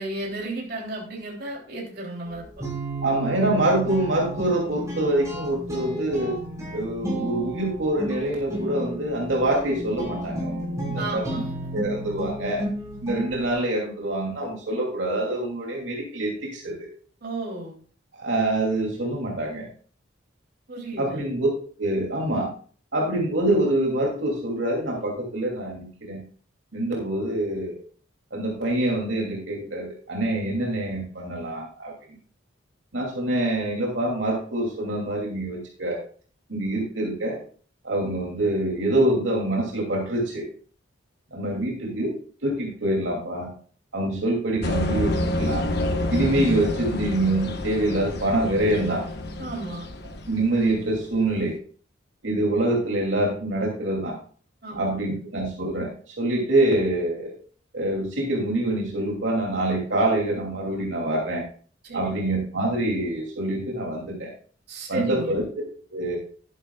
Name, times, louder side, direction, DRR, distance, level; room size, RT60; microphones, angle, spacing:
voice 1, 0.0-2.5 11.0-11.5 17.2-17.8 20.7-21.2 41.5-41.6 49.4-49.9 54.6-54.8 61.8-62.4 64.7-65.4, right 2 dB, 55° right, -2 dB, 3.2 m, -33 dB
Guitar, 2.3-13.5, right 1 dB, 15° right, 5.2 m, -32 dB
voice 2, 3.0-6.4 6.7-11.2 11.7-12.6 13.0-16.9 18.1-19.7 21.0-21.5 21.8-22.5 22.9-26.2 26.7-27.8 28.3-31.9 32.9-36.0 36.5-37.4 37.8-40.4 41.3-42.1 42.4-43.5 43.9-45.7 46.1-49.0 50.2-51.5 52.2-54.2 54.7-55.9 56.2-57.3 57.7-61.4 61.9-64.3 64.9-65.4 65.9-66.2, right 1 dB, 75° right, -2 dB, 2.8 m, -25 dB
sound 1, 44.6-51.0, left 1 dB, 55° left, 1.2 m, -28 dB
11.0 x 11.0 x 2.4 m, 0.43 s
head